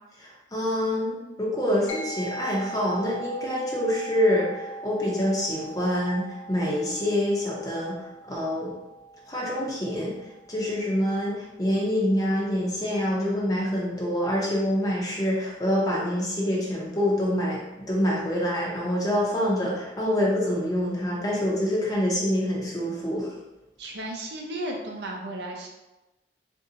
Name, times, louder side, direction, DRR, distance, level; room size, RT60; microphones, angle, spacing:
voice 1, 0.2-8.0 8.3-8.7 9.3-10.1 10.5-23.3, equal, 20° left, -4 dB, 0.7 m, -26 dB
sound 1, 1.9-11.6, right 2 dB, 80° left, 0.8 m, -41 dB
voice 2, 23.8-25.7, right 1 dB, 60° right, 0 dB, 0.6 m, -34 dB
3.9 x 2.6 x 2.7 m, 1.0 s
head